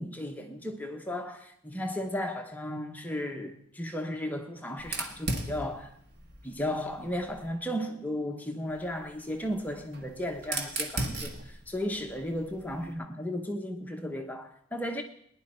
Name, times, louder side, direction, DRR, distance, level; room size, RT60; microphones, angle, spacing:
voice 1, 0.0-5.9 6.4-15.0, left 1 dB, 10° left, 0.8 m, -35 dB
Fire, 4.8-7.5 8.7-12.9, right 2 dB, 50° right, 1.6 m, -38 dB
19.0 x 10.5 x 4.3 m
head